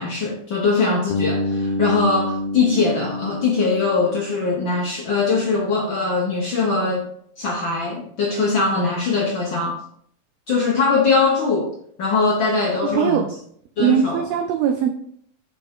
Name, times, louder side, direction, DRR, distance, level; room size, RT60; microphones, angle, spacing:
voice 1, 0.0-7.0 7.4-9.8 10.5-11.7 12.0-13.2 13.8-14.2, left 4 dB, 65° left, -2 dB, 1.2 m, -21 dB
Bass guitar, 1.1-5.0, left 1 dB, 90° left, 1.3 m, -27 dB
voice 2, 12.8-13.3 13.8-14.9, right 8 dB, 85° right, 6 dB, 1.4 m, -20 dB
6.8 x 5.8 x 3.6 m, 0.65 s
omnidirectional pair, 3.5 m